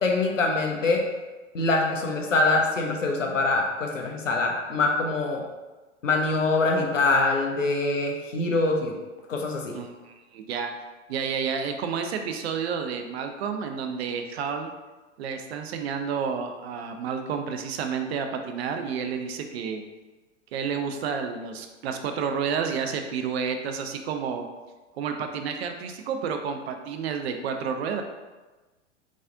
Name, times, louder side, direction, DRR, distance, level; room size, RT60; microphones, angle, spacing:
voice 1, 0.0-1.0 1.5-5.4 6.0-8.9 9.3-9.7, left 3 dB, 85° left, 1 dB, 0.8 m, -24 dB
voice 2, 9.7-10.7 11.1-14.7 15.2-19.8 20.5-24.5 24.9-28.0, right 6 dB, 55° right, 6 dB, 0.6 m, -30 dB
4.0 x 3.6 x 2.6 m, 1.2 s
figure-of-eight pair, 95°, 37 cm